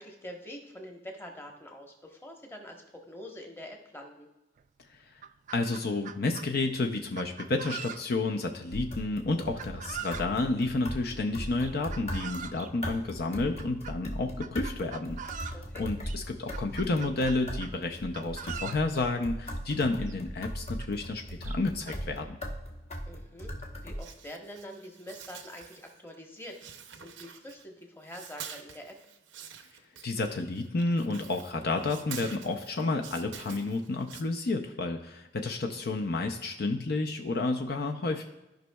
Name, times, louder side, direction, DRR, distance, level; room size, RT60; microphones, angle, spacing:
voice 1, 0.0-4.3 15.5-15.9 23.1-26.6 27.0-29.0, equal, 15° left, 1 dB, 1.1 m, -45 dB
Chicken rooster, 4.6-4.7 5.0-6.5 7.2-8.3 9.6-10.3 11.6-12.7 13.6-14.0 14.4-15.6 16.0-16.2 16.5-17.8 18.1-18.8 19.8-19.9 20.1-20.2 20.8-20.9 21.4-22.0, right 8 dB, 45° right, 0.3 m, -42 dB
voice 2, 5.5-22.4 30.0-38.2, left 3 dB, 60° left, 4 dB, 0.6 m, -31 dB
sound 1, 8.7-24.0, equal, 40° left, 1.0 m, -39 dB
sound 2, 24.0-26.2 26.4-27.8 28.1-34.2, right 8 dB, 85° right, 0.7 m, -47 dB
14.0 x 5.3 x 2.3 m, 1.0 s
head